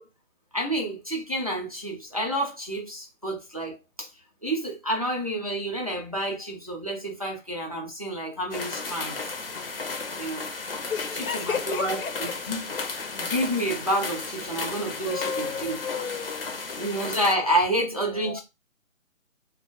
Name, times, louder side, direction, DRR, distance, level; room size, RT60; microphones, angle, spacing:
voice 1, 0.5-4.1 4.4-9.2 10.2-10.4 11.3-12.7 13.1-15.8 16.8-18.4, right 1 dB, 30° right, 0.4 m, -29 dB
sound 1, 8.5-17.4, left 4 dB, 45° left, 0.5 m, -34 dB
voice 2, 10.9-12.6 14.5-14.7 15.0-16.6 18.0-18.4, left 7 dB, 90° left, 0.6 m, -33 dB
2.4 x 2.0 x 2.9 m
figure-of-eight pair, 155°, 40 cm